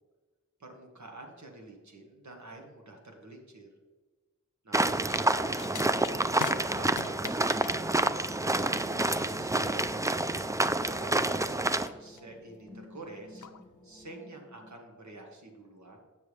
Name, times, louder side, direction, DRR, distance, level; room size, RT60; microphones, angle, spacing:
voice 1, 0.6-3.7 4.6-5.6 6.1-7.9 8.3-9.8 10.6-13.5 13.8-16.0, right 2 dB, 65° right, 2 dB, 1.5 m, -48 dB
sound 1, 4.7-11.9, right 2 dB, 10° right, 0.3 m, -28 dB
sound 2, 5.0-14.1, left 7 dB, 70° left, 0.5 m, -46 dB
sound 3, 6.7-14.7, left 2 dB, 5° left, 1.4 m, -52 dB
7.6 x 6.9 x 3.3 m, 1.3 s
wide cardioid pair, 50°, 31 cm